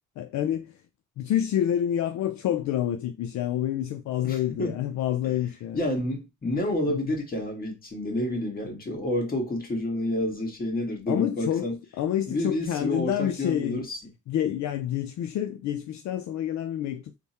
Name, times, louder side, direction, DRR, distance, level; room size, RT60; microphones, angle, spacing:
voice 1, 0.2-0.8 1.2-5.8 6.9-7.0 11.1-11.7 12.0-13.8 14.3-17.2, left 11 dB, 70° left, 0.5 m, -28 dB
voice 2, 4.2-4.8 5.7-11.8 12.3-14.0, left 1 dB, 30° left, 1.5 m, -29 dB
3.4 x 2.2 x 4.2 m
cardioid pair, 90°, 30 cm